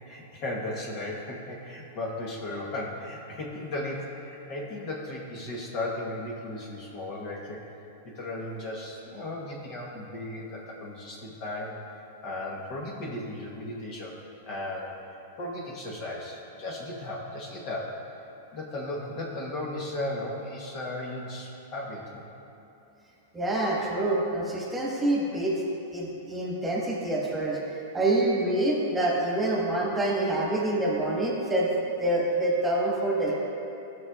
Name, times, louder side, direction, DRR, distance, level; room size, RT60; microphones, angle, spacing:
voice 1, 0.1-7.6 8.0-11.7 12.2-14.2 14.5-14.9 15.4-17.9 18.5-22.2, left 1 dB, 45° left, -3 dB, 1.3 m, -36 dB
voice 2, 23.3-25.5 25.9-31.7 32.0-33.4, right 1 dB, 10° right, -4 dB, 1.5 m, -26 dB
12.5 x 6.3 x 2.4 m, 2.8 s
hypercardioid pair, 115°, 0 cm